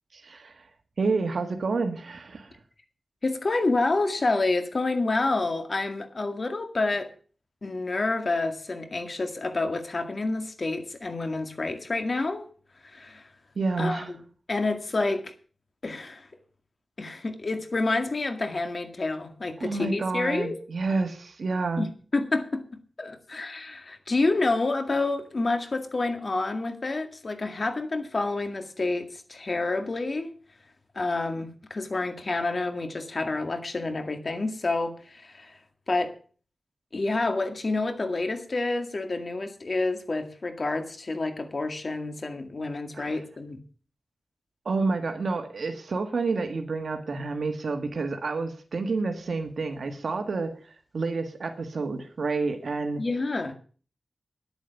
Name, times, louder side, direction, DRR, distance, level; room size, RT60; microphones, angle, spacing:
voice 1, 0.1-0.6 1.0-2.5 13.5-14.1 19.6-21.9 42.9-43.2 44.6-50.5 50.9-53.0, right 3 dB, 80° right, 6 dB, 1.5 m, -29 dB
voice 2, 3.2-7.1 7.6-12.5 12.8-13.3 13.8-14.2 14.5-15.3 15.8-16.3 17.0-20.6 21.8-22.6 23.0-30.3 30.9-35.6 35.9-36.2 36.9-43.6 53.0-53.5, left 3 dB, 50° left, 6 dB, 2.0 m, -28 dB
10.5 x 8.9 x 7.0 m, 0.41 s
wide cardioid pair, 80°, 0 cm